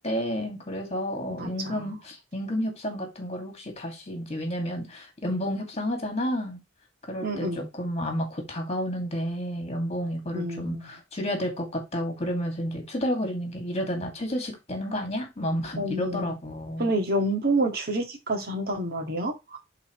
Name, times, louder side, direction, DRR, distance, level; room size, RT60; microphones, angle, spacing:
voice 1, 0.0-6.6 7.1-16.9, equal, 35° left, 2.3 m, -31 dB
voice 2, 1.4-1.9 7.2-7.7 10.3-11.0 15.8-16.3 16.8-19.6, right 1 dB, 50° right, 1.9 m, -28 dB
10.5 x 4.1 x 3.1 m
head